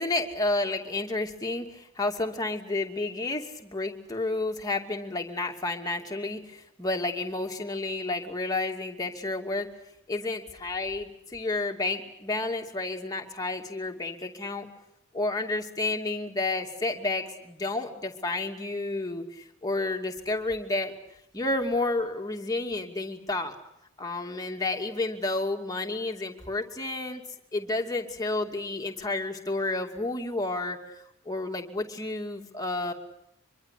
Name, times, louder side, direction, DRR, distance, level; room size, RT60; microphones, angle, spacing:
voice 1, 0.0-9.7 10.1-14.7 15.1-20.9 21.3-23.6 24.0-27.2 27.5-31.0 31.2-32.9, left 2 dB, 20° left, 2 dB, 2.6 m, -31 dB
25.0 x 23.5 x 8.5 m, 0.78 s
head